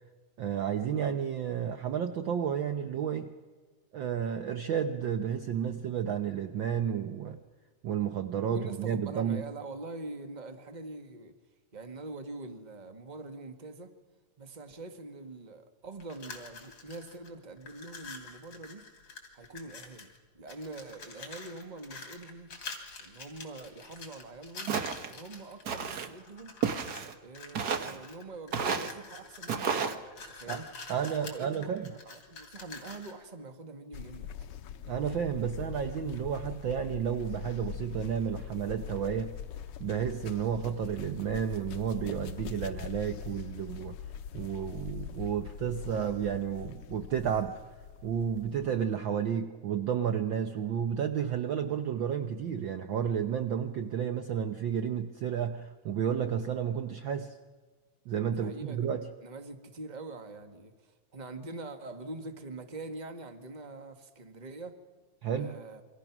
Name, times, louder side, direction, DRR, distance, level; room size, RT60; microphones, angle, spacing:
voice 1, 0.4-3.3 3.9-7.4 7.8-9.4 30.5-30.6 30.9-31.9 34.9-39.3 39.8-44.0 44.3-47.6 48.0-57.4 58.1-59.1 65.2-65.6, right 8 dB, 75° right, 7 dB, 1.1 m, -31 dB
voice 2, 8.5-11.3 11.7-13.9 14.4-18.9 19.3-22.5 23.0-24.8 25.1-26.6 27.2-30.7 31.2-34.3 58.3-58.9 59.2-64.8 65.3-65.8, right 2 dB, 20° right, 6 dB, 1.1 m, -44 dB
sound 1, 16.0-17.3 17.6-20.2 20.5-25.6 26.2-27.1 27.3-33.2, left 4 dB, 40° left, 3.7 m, -47 dB
Walk footsteps, 24.7-25.1 25.7-26.1 26.6-27.1 27.6-28.0 28.5-28.9 29.5-30.0, right 6 dB, 55° right, 1.1 m, -31 dB
sound 2, 33.9-48.9, left 9 dB, 65° left, 1.5 m, -42 dB
28.0 x 25.0 x 6.1 m, 1.4 s
omnidirectional pair, 3.4 m